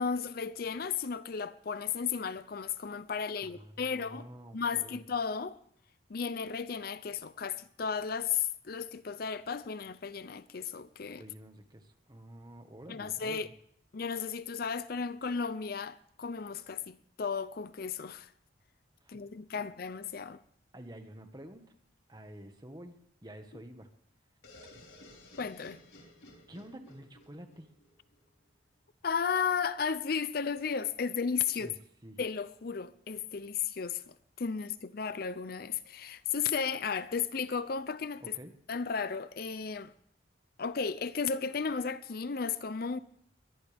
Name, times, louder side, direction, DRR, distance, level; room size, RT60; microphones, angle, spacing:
voice 1, 0.0-4.3 4.5-5.6 6.1-11.2 12.9-13.5 13.9-18.3 19.1-20.4 25.4-25.8 29.0-31.7 32.2-38.3 38.7-39.9 40.6-43.0, left 6 dB, 50° left, 0.5 m, -34 dB
voice 2, 3.4-5.0 11.2-13.5 19.0-19.2 19.6-19.7 20.7-21.6 22.1-23.9 26.5-27.7 31.5-31.7 32.0-32.2 38.2-38.5, right 1 dB, 20° right, 1.6 m, -49 dB
sound 1, 24.4-28.2, left 1 dB, 85° left, 5.1 m, -55 dB
22.5 x 18.5 x 3.5 m
head